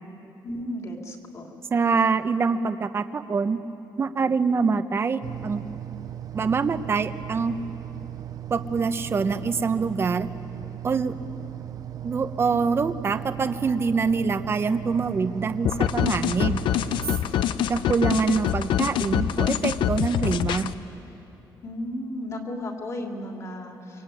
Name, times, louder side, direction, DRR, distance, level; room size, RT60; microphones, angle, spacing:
voice 1, 0.4-1.5 21.6-24.0, left 1 dB, 40° left, 1 dB, 3.0 m, -34 dB
voice 2, 1.7-3.6 4.0-5.7 6.3-7.6 8.5-10.3 10.8-11.1 12.0-16.6 17.7-20.7, right 5 dB, 30° right, 10 dB, 0.9 m, -25 dB
sound 1, 5.2-17.1, right 11 dB, 50° right, 0.5 m, -37 dB
sound 2, 15.6-20.7, left 10 dB, 80° left, 0.8 m, -25 dB
25.0 x 25.0 x 9.2 m, 3.0 s
cardioid pair, 155°, 8 cm